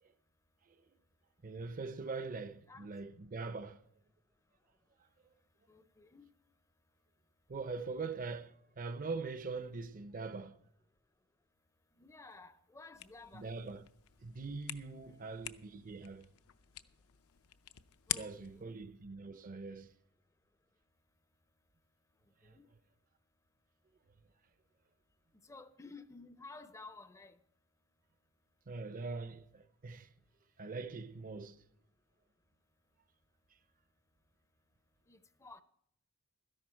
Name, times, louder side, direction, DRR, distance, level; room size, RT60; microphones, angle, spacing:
voice 1, 1.4-3.9 7.5-10.6 13.3-13.8 14.2-16.3 18.1-19.9 22.4-22.6 28.7-30.1 30.6-31.6, right 4 dB, 40° right, 0.5 m, -43 dB
voice 2, 5.7-6.3 12.0-13.5 15.1-15.3 18.1-18.8 22.4-22.7 25.4-27.4 35.1-35.6, left 3 dB, 15° left, 0.5 m, -54 dB
sound 1, 12.9-18.6, left 13 dB, 80° left, 0.6 m, -46 dB
13.5 x 11.0 x 4.4 m
head